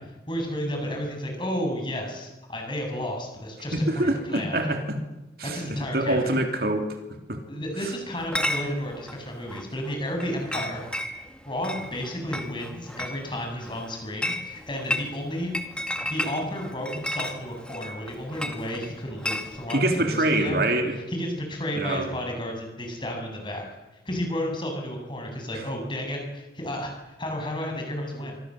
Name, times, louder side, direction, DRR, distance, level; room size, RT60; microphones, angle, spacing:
voice 1, 0.3-4.7 5.5-6.4 7.5-10.8 11.5-15.5 15.9-20.6 21.1-23.6 23.9-28.4, equal, 25° left, 2 dB, 7.7 m, -32 dB
voice 2, 3.7-5.0 5.4-5.6 5.9-6.9 7.3-7.4 19.7-21.0 21.7-22.1, right 1 dB, 55° right, 5 dB, 3.3 m, -24 dB
Chatter / Chink clink, 8.2-19.9, left 1 dB, 5° left, 2.0 m, -34 dB
26.5 x 24.0 x 7.8 m, 1.1 s
head